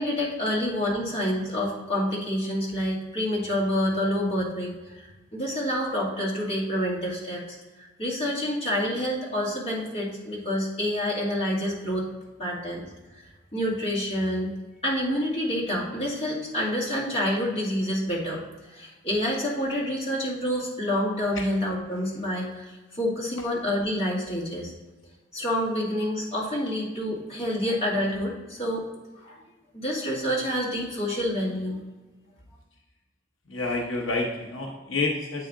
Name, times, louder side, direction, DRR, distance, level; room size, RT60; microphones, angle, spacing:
voice 1, 0.0-7.6 8.0-12.0 12.4-12.8 13.2-13.3 13.5-14.5 14.8-18.4 18.7-22.7 23.0-24.7 25.3-28.8 29.2-29.4 29.7-31.8, equal, 35° left, -6 dB, 2.0 m, -28 dB
voice 2, 33.5-35.5, left 3 dB, 85° left, 0 dB, 0.8 m, -29 dB
8.2 x 4.1 x 3.7 m, 1.2 s
head